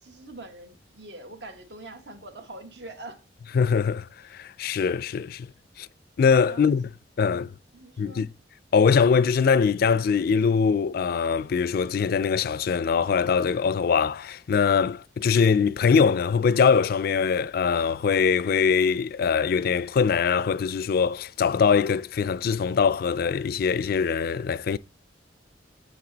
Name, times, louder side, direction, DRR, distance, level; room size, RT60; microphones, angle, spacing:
voice 1, 0.0-3.2 6.5-6.8 7.7-8.2, right 2 dB, 65° right, 1.3 m, -43 dB
voice 2, 3.5-4.1 4.3-5.5 5.8-5.9 6.2-6.9 7.2-7.5 8.0-8.3 8.7-24.8, left 6 dB, 55° left, 0.3 m, -22 dB
7.4 x 5.9 x 3.9 m
head